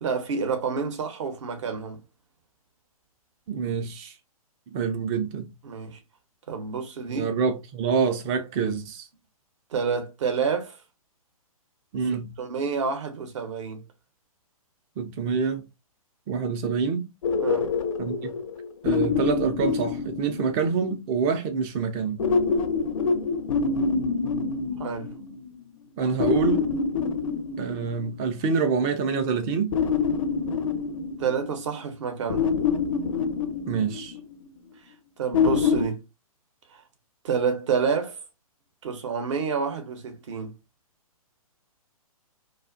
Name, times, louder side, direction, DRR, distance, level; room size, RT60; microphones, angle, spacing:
voice 1, 0.0-2.0 5.6-6.0 6.5-7.3 9.7-10.8 12.4-13.8 17.4-17.7 24.8-25.1 31.2-32.6 35.2-36.0 36.7-36.8 37.2-38.2 38.8-40.5, right 5 dB, 50° right, 0.8 m, -28 dB
voice 2, 3.5-4.1 4.7-5.5 7.1-9.1 11.9-12.3 15.0-15.6 16.3-17.1 18.0-18.3 18.8-22.2 26.0-26.7 27.6-29.8 33.7-34.2, right 5 dB, 20° right, 0.4 m, -26 dB
sound 1, 17.2-20.9 22.2-25.5 26.2-28.3 29.7-31.8 32.3-34.3 35.3-35.8, left 5 dB, 65° left, 0.4 m, -26 dB
2.4 x 2.4 x 2.4 m
hypercardioid pair, 130°, 19 cm